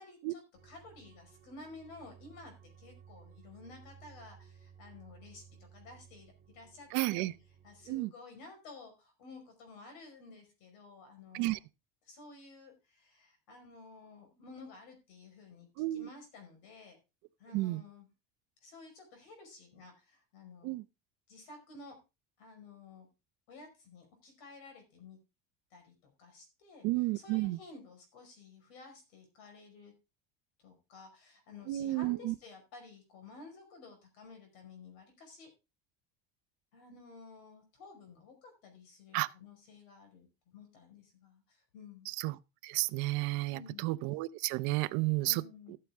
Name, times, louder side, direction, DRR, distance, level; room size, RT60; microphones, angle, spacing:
voice 1, 0.0-2.5 2.8-5.4 5.7-7.3 7.6-11.6 12.0-17.0 17.4-18.1 18.6-20.8 21.3-22.0 22.4-23.1 23.5-25.2 25.7-25.9 26.2-26.9 27.1-29.9 30.6-35.5 36.7-40.3 40.5-42.1 43.5-43.9 45.2-45.8, left 3 dB, 65° left, 5.1 m, -53 dB
sound 1, 0.5-8.0, right 7 dB, 30° right, 3.4 m, -58 dB
voice 2, 6.9-7.3 7.9-8.1 11.3-11.6 15.8-16.1 17.5-17.8 20.6-20.8 26.8-27.6 31.7-32.3 39.1-39.3 42.1-42.4 42.6-45.4, right 20 dB, 60° right, 0.7 m, -32 dB
13.0 x 8.9 x 3.6 m
cardioid pair, 175°, 35 cm